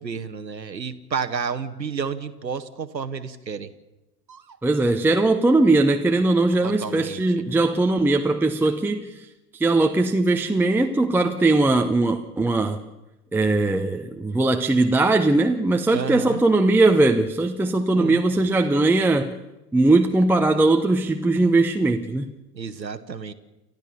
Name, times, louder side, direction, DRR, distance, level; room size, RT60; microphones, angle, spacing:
voice 1, 0.0-3.7 4.3-4.6 6.6-7.2 15.9-16.4 18.0-18.2 22.5-23.3, right 6 dB, 85° right, 1.1 m, -31 dB
voice 2, 4.6-9.1 9.5-12.8 13.3-19.3 19.7-22.3, right 2 dB, 5° right, 0.8 m, -20 dB
29.5 x 13.5 x 7.1 m
figure-of-eight pair, 85°, 50 cm